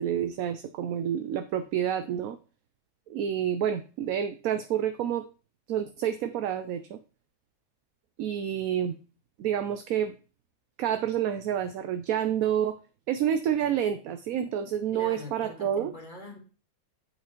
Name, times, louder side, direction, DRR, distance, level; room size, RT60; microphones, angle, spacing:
voice 1, 0.0-2.4 3.1-5.3 5.7-7.0 8.2-9.0 9.4-10.1 10.8-12.8 13.1-15.9, right 9 dB, 70° right, 9 dB, 1.0 m, -28 dB
voice 2, 14.9-16.4, left 1 dB, 30° left, 2 dB, 2.2 m, -42 dB
8.3 x 5.2 x 4.4 m, 0.34 s
omnidirectional pair, 1.7 m